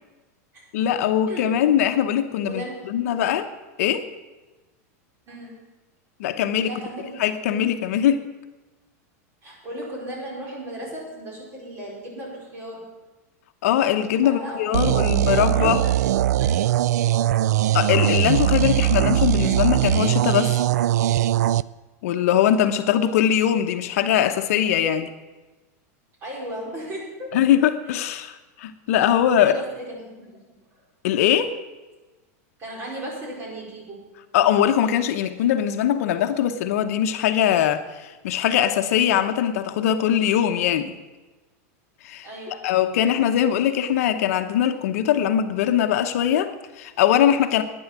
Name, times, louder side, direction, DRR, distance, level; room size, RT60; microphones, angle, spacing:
voice 1, 0.7-3.4 3.8-4.0 6.2-6.7 7.2-8.2 13.6-15.8 17.7-20.6 22.0-25.1 27.3-29.5 31.0-31.5 34.3-40.9 42.0-47.6, left 10 dB, 65° left, 8 dB, 0.9 m, -21 dB
voice 2, 2.4-3.3 5.3-5.6 6.6-7.3 9.4-12.9 14.2-16.7 26.2-27.4 29.3-30.8 32.6-34.1 42.2-42.7 43.1-43.2, right 1 dB, 25° right, -3 dB, 4.8 m, -36 dB
sound 1, 14.7-21.6, right 13 dB, 85° right, 0.4 m, -20 dB
11.0 x 10.0 x 7.4 m, 1.2 s
supercardioid pair, 155°, 9 cm